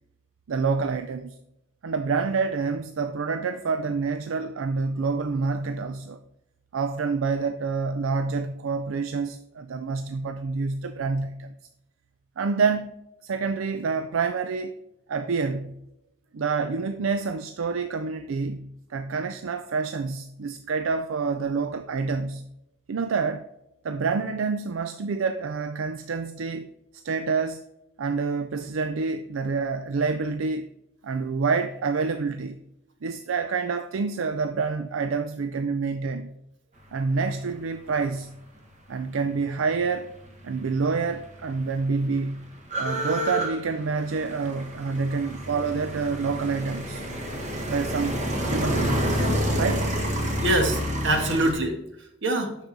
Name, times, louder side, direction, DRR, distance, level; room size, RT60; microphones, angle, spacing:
voice 1, 0.5-1.4 1.8-6.2 6.7-11.5 12.4-12.9 13.2-14.7 15.1-15.7 16.3-22.4 22.9-23.4 23.8-26.7 27.0-27.6 28.0-30.7 31.0-32.6 33.0-36.3 36.9-38.3 38.9-40.1 40.4-42.4 42.8-47.0 47.7-48.2 48.5-49.3 49.6-49.9, right 4 dB, 80° right, 0.5 m, -27 dB
sound 1, 40.9-41.0 41.1-51.5, equal, 35° right, 1.3 m, -29 dB
voice 2, 50.4-52.6, right 1 dB, 60° right, 1.4 m, -25 dB
7.0 x 6.1 x 4.0 m
head